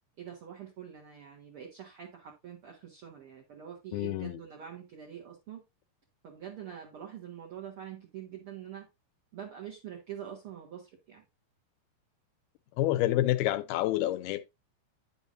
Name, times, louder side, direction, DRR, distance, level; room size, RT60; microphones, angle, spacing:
voice 1, 0.2-5.6 6.2-8.9 9.3-11.2, right 9 dB, 70° right, 1.3 m, -45 dB
voice 2, 3.9-4.4 12.8-14.4, left 14 dB, 80° left, 2.5 m, -28 dB
9.9 x 7.0 x 2.5 m
omnidirectional pair, 4.6 m